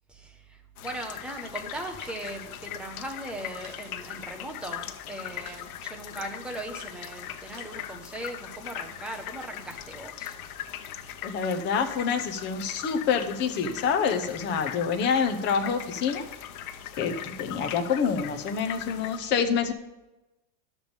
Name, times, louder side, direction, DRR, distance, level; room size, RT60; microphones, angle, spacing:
voice 1, 0.1-10.3, right 1 dB, ahead, 2 dB, 0.7 m, -39 dB
sound 1, 0.8-19.2, left 11 dB, 85° left, 1.0 m, -40 dB
sound 2, 1.7-2.6 3.0-3.3 3.6-4.0 5.4-5.7 5.9-7.7, right 5 dB, 70° right, 2.5 m, -51 dB
voice 2, 11.2-16.3 17.0-19.7, left 6 dB, 25° left, 6 dB, 0.9 m, -27 dB
12.0 x 7.2 x 5.2 m, 1.0 s
supercardioid pair, 170°, 42 cm